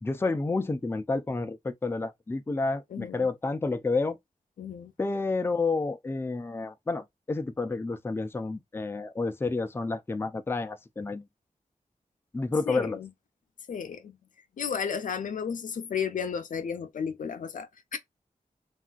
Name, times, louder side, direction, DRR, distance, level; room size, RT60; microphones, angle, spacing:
voice 1, 0.0-4.2 5.0-11.2 12.3-13.0, left 3 dB, 15° left, 0.4 m, -30 dB
voice 2, 2.9-3.3 4.6-4.9 12.7-13.1 13.7-14.2 14.6-18.0, left 7 dB, 75° left, 0.4 m, -33 dB
3.3 x 2.4 x 2.2 m
wide cardioid pair, 85°, 14 cm